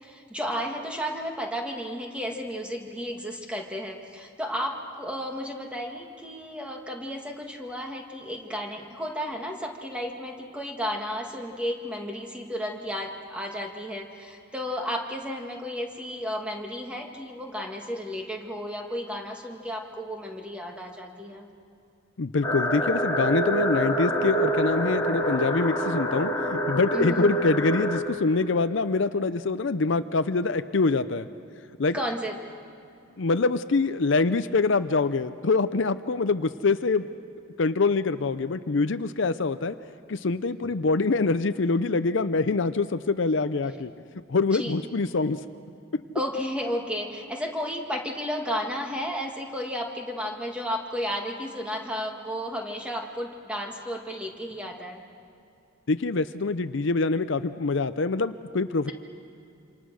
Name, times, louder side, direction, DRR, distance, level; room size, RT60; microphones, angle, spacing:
voice 1, 0.0-21.5 26.9-27.3 31.9-32.4 44.5-44.9 46.1-55.0, equal, 5° right, 1 dB, 1.9 m, -33 dB
voice 2, 22.2-31.3 31.8-32.0 33.2-37.1 37.6-39.8 40.1-43.9 44.3-45.4 45.9-46.0 55.9-58.9, left 3 dB, 60° left, 12 dB, 0.6 m, -25 dB
sound 1, 22.4-28.0, right 1 dB, 15° left, 2.8 m, -26 dB
27.5 x 26.5 x 6.3 m, 2.6 s
head